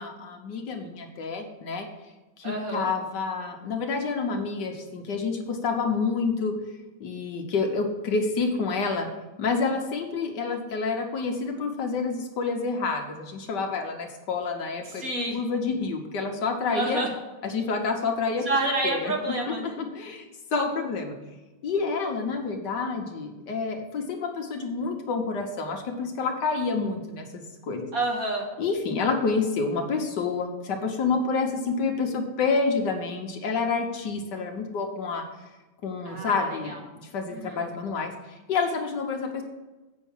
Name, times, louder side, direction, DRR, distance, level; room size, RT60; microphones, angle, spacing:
voice 1, 0.0-1.9 2.4-6.5 7.0-9.1 9.4-15.0 15.3-17.0 17.4-18.5 18.8-19.1 19.5-20.2 20.5-21.2 21.6-27.9 28.6-35.2 35.8-39.4, left 4 dB, 65° left, 3 dB, 1.5 m, -28 dB
voice 2, 2.4-2.9 14.8-15.4 16.7-17.1 18.5-19.8 27.9-28.5 36.1-36.8 37.3-37.6, right 2 dB, 50° right, 0 dB, 1.9 m, -29 dB
8.2 x 5.6 x 7.2 m, 1.1 s
omnidirectional pair, 2.1 m